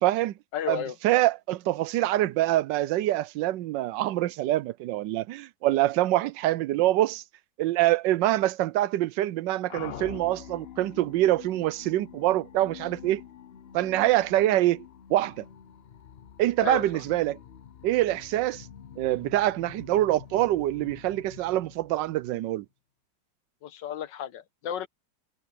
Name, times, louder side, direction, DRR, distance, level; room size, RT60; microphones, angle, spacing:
voice 1, 0.0-0.3 0.7-7.2 7.6-13.2 13.7-14.8 15.1-15.4 16.4-17.4 17.8-18.7 19.0-22.6, right 15 dB, 80° right, 1.3 m, -25 dB
voice 2, 0.5-1.0 16.6-17.0 23.6-24.9, left 9 dB, 80° left, 1.6 m, -33 dB
sound 1, 9.7-22.6, left 9 dB, 60° left, 0.6 m, -46 dB
omnidirectional pair, 1.9 m